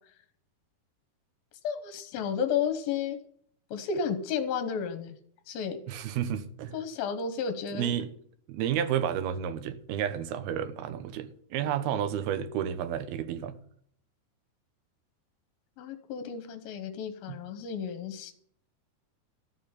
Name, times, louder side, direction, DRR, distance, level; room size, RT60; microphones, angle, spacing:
voice 1, 1.6-3.2 3.7-5.2 5.5-5.8 6.7-7.9 15.8-18.3, left 7 dB, 70° left, 2.7 m, -32 dB
voice 2, 5.9-6.7 7.7-8.1 8.5-13.5 17.3-17.4, right 9 dB, 75° right, 2.8 m, -31 dB
13.5 x 6.4 x 8.7 m
omnidirectional pair, 4.5 m